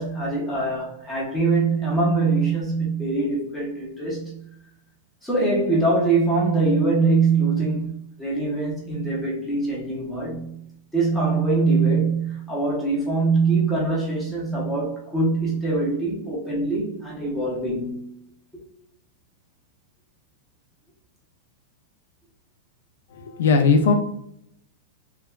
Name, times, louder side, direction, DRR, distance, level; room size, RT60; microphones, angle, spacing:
voice 1, 0.0-4.4 5.2-10.5 10.9-18.1, right 3 dB, 5° left, -4 dB, 0.5 m, -23 dB
voice 2, 23.1-23.9, left 4 dB, 80° left, 6 dB, 0.4 m, -18 dB
3.2 x 2.0 x 2.3 m, 0.75 s
supercardioid pair, 175°, 0 cm